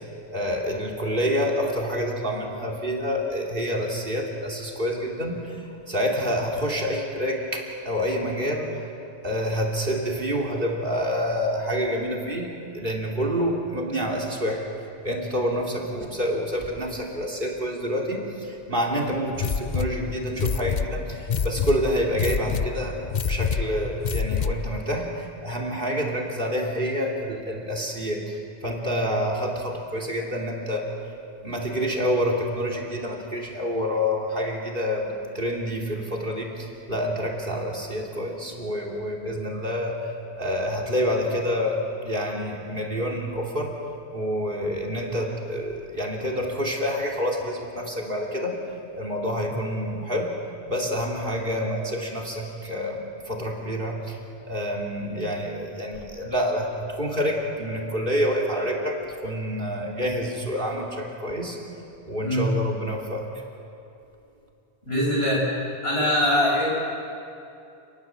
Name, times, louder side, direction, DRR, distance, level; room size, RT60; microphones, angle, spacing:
voice 1, 0.3-8.8 9.2-14.6 15.0-30.9 31.4-40.0 40.3-43.7 44.1-48.6 49.0-50.3 50.7-54.2 54.5-61.6 62.1-63.3, equal, 50° right, 1 dB, 3.4 m, -28 dB
sound 1, 19.3-24.8, left 6 dB, 45° left, 0.8 m, -27 dB
voice 2, 64.9-65.5 65.8-66.7, equal, 65° left, -4 dB, 8.1 m, -22 dB
29.0 x 20.0 x 7.7 m, 2.6 s
omnidirectional pair, 1.1 m